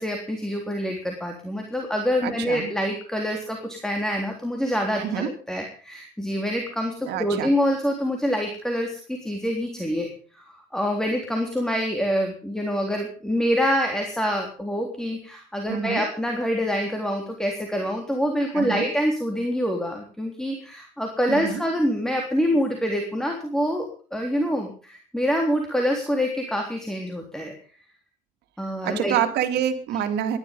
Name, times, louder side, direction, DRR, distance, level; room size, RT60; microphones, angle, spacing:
voice 1, 0.0-10.1 10.3-23.9 24.1-27.5 28.6-29.2, equal, 5° left, 2 dB, 3.5 m, -26 dB
voice 2, 2.2-2.7 5.0-5.3 7.1-7.5 15.7-16.0 18.5-18.9 21.3-21.6 28.8-30.4, right 9 dB, 80° right, 8 dB, 2.3 m, -27 dB
19.5 x 12.0 x 5.4 m, 0.39 s
cardioid pair, 110°, 17 cm